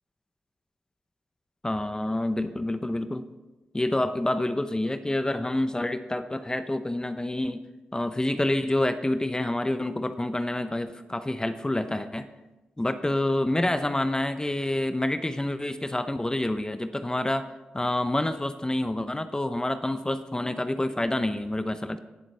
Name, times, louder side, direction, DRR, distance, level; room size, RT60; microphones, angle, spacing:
voice 1, 1.6-3.3 3.7-7.6 7.9-12.3 12.8-17.5 17.7-22.0, left 1 dB, 20° left, 10 dB, 0.8 m, -28 dB
18.5 x 7.3 x 3.4 m, 1.1 s
supercardioid pair, 45°, 4 cm